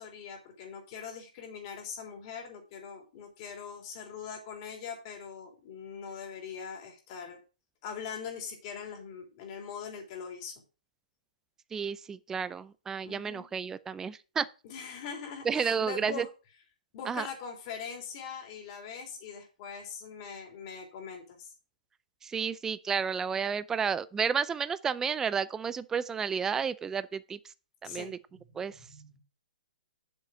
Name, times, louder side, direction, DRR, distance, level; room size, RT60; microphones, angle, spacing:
voice 1, 0.0-7.4 7.8-10.5 13.0-13.5 14.6-16.3 16.9-21.5 27.8-29.2, left 6 dB, 40° left, 3.4 m, -42 dB
voice 2, 11.7-14.5 15.4-16.3 17.1-17.3 22.2-27.5 27.8-28.2 28.5-28.8, right 6 dB, 10° right, 0.4 m, -31 dB
7.4 x 5.3 x 6.3 m
hypercardioid pair, 140°, 5 cm